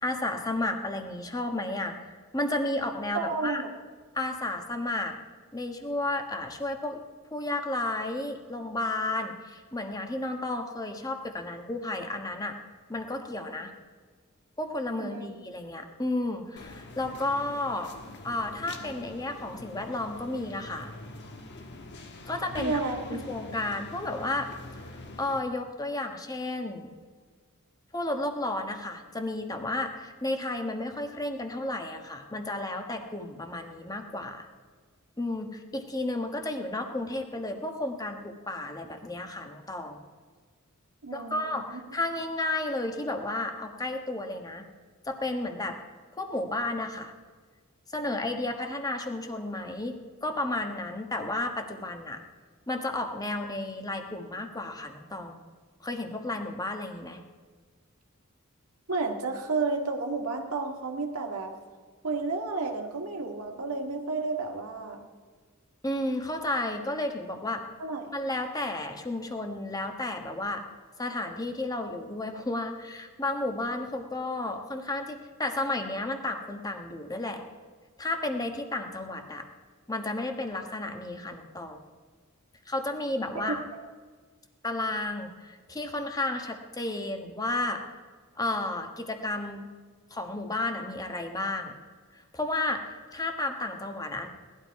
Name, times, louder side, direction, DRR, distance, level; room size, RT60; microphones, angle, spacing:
voice 1, 0.0-3.6 4.1-5.1 5.5-7.0 7.3-12.6 12.9-13.7 14.6-17.9 18.2-20.9 22.3-22.8 23.1-24.5 25.2-26.9 27.9-34.5 35.2-40.0 41.1-44.6 45.0-45.8 46.1-47.1 47.9-52.2 52.7-55.4 55.8-57.2 65.8-67.6 68.1-70.6 71.0-77.4 78.0-79.4 79.9-81.8 82.7-83.6 84.6-87.8 88.4-89.7 90.1-91.7 92.1-94.3, left 2 dB, 15° left, 5 dB, 1.3 m, -32 dB
voice 2, 3.1-3.7 15.0-15.3 22.6-23.2 41.0-41.8 58.9-61.5 62.0-65.1 67.8-68.1 83.7-83.8, right 3 dB, 80° right, 1 dB, 1.8 m, -31 dB
sound 1, 16.6-25.4, left 2 dB, 55° left, 1.3 m, -44 dB
18.5 x 12.0 x 4.7 m, 1.5 s
head